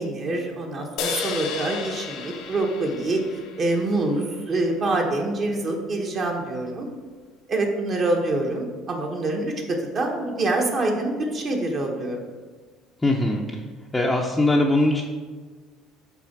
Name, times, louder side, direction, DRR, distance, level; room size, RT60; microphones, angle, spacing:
voice 1, 0.0-6.9 7.5-12.2, right 2 dB, 40° right, 1 dB, 1.1 m, -26 dB
sound 1, 1.0-4.5, left 5 dB, 75° left, 0.8 m, -33 dB
voice 2, 13.0-13.4 13.9-15.0, left 2 dB, 10° left, -2 dB, 0.6 m, -20 dB
5.9 x 4.1 x 5.9 m, 1.4 s
cardioid pair, 115°, 0 cm